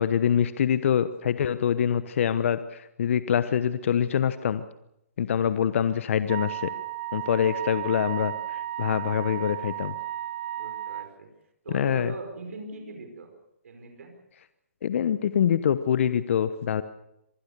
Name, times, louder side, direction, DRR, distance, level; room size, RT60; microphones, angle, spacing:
voice 1, 0.0-4.6 5.2-6.7 7.1-8.3 8.8-9.9 11.7-12.1 14.8-16.8, left 8 dB, 55° left, 13 dB, 1.1 m, -25 dB
Wind instrument woodwind instrument, 6.3-11.1, right 13 dB, 45° right, 0.9 m, -34 dB
voice 2, 10.6-11.3 11.6-13.3 13.6-14.1, right 3 dB, 70° right, 4 dB, 5.1 m, -41 dB
26.0 x 20.0 x 6.8 m, 0.83 s
hypercardioid pair, 135°, 8 cm